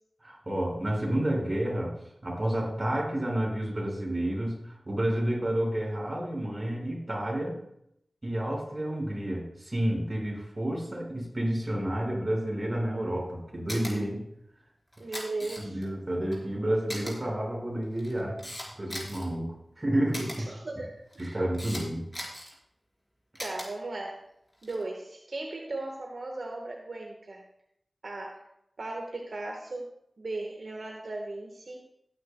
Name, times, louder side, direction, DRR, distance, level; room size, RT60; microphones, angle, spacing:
voice 1, 0.2-2.0 2.2-7.6 8.2-14.2 15.6-18.4 18.7-20.5 21.2-22.1, right 1 dB, 35° right, -2 dB, 4.9 m, -30 dB
Camera, 13.7-13.9 14.9-15.9 16.3-16.4 16.9-17.1 17.8-19.3 20.1-20.4 21.1-21.8 22.1-22.5 23.4-23.7 24.5-24.8, equal, 15° left, 4.3 m, -38 dB
voice 2, 15.0-15.8 20.4-21.4 23.4-24.2 24.6-27.4 28.0-28.5 28.8-29.9 30.2-31.8, right 2 dB, 75° right, 1 dB, 1.3 m, -37 dB
18.0 x 9.2 x 2.2 m, 0.75 s
wide cardioid pair, 55°, 0 cm